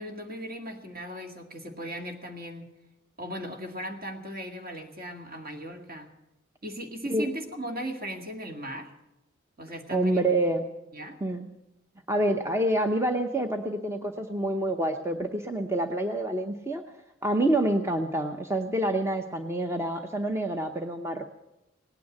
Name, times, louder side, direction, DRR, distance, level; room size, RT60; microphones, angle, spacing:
voice 1, 0.0-2.7 3.2-6.1 6.6-8.9 9.6-10.3 10.9-11.2, equal, 50° right, 3 dB, 2.0 m, -37 dB
voice 2, 9.9-10.7 11.2-11.5 12.1-16.8 17.2-21.2, right 1 dB, 15° right, 5 dB, 0.7 m, -27 dB
18.0 x 9.2 x 8.4 m, 0.94 s
head